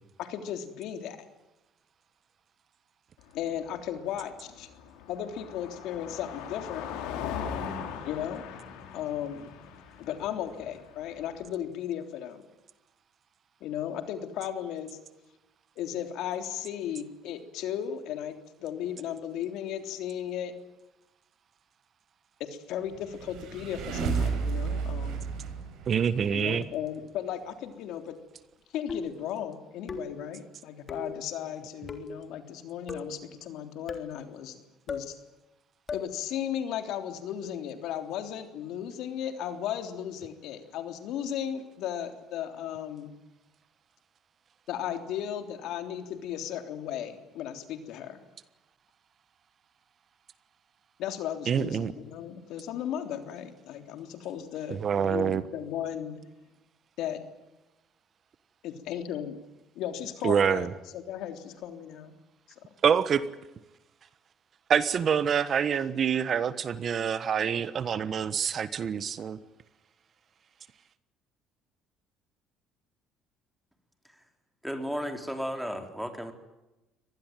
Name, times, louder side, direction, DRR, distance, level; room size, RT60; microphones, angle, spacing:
voice 1, 0.2-1.2 3.3-4.7 5.1-6.9 8.1-8.5 8.9-9.5 10.0-12.4 13.6-15.0 15.8-20.5 22.4-25.3 26.3-28.2 28.7-34.6 34.9-35.2 35.9-43.2 44.7-48.2 51.0-56.2 57.0-57.2 58.6-59.4 59.8-62.1 62.6-62.7, left 10 dB, 75° left, 3.4 m, -35 dB
Car passing by, 3.2-11.5, left 7 dB, 90° left, 4.5 m, -40 dB
sound 1, 23.0-26.5, right 5 dB, 70° right, 7.8 m, -32 dB
voice 2, 25.9-26.6 51.5-51.9 54.8-55.4 60.2-60.7 62.8-63.2 64.7-69.4, right 7 dB, 40° right, 1.3 m, -26 dB
sound 2, 28.9-29.3 29.9-30.3 30.9-31.2 31.9-32.2 32.9-33.2 33.9-34.2 34.9-35.1 35.9-36.1, left 4 dB, 30° left, 3.3 m, -37 dB
voice 3, 74.6-76.3, equal, ahead, 4.0 m, -34 dB
24.5 x 19.5 x 9.2 m
cardioid pair, 115°, 0 cm